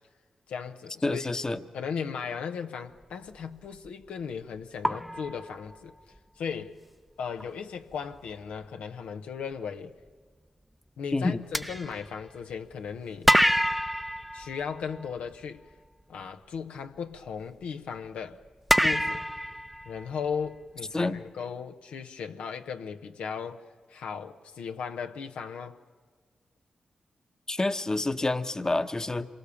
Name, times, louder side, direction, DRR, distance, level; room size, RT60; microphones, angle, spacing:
voice 1, 0.5-1.4 1.7-5.9 6.4-6.8 7.2-9.9 11.0-13.3 14.3-15.6 16.1-18.4 18.8-19.2 19.9-23.6 23.9-25.8 28.2-28.4, left 6 dB, 85° left, 0.9 m, -36 dB
voice 2, 1.0-1.6 11.1-11.4 20.9-21.3 27.5-29.3, left 2 dB, 30° left, 1.0 m, -28 dB
sound 1, 3.7-3.9 4.8-6.2 7.4-7.5 7.9-8.1 11.5-12.7 13.2-15.4 18.7-20.5, equal, ahead, 0.7 m, -27 dB
27.0 x 22.5 x 7.0 m
supercardioid pair, 45°, 2 cm